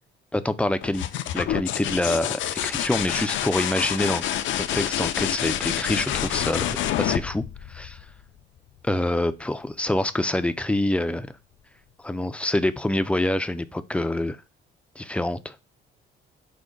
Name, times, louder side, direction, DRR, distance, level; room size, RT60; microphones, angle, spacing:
voice 1, 0.3-1.1 1.3-4.2 4.6-7.4 7.7-8.0 8.8-11.3 12.0-14.4 15.0-15.6, left 1 dB, 5° left, 0.3 m, -26 dB
sound 1, 0.8-8.4 10.2-10.7, left 11 dB, 75° left, 0.4 m, -28 dB
4.9 x 2.1 x 3.8 m
cardioid pair, 90°, 20 cm